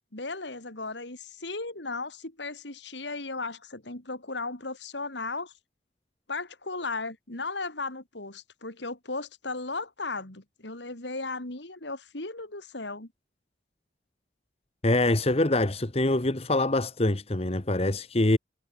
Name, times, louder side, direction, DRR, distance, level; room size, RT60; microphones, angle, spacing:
voice 1, 0.1-5.5 6.3-13.1, left 3 dB, 75° left, 3.6 m, -36 dB
voice 2, 14.8-18.4, left 2 dB, 35° left, 1.2 m, -24 dB
head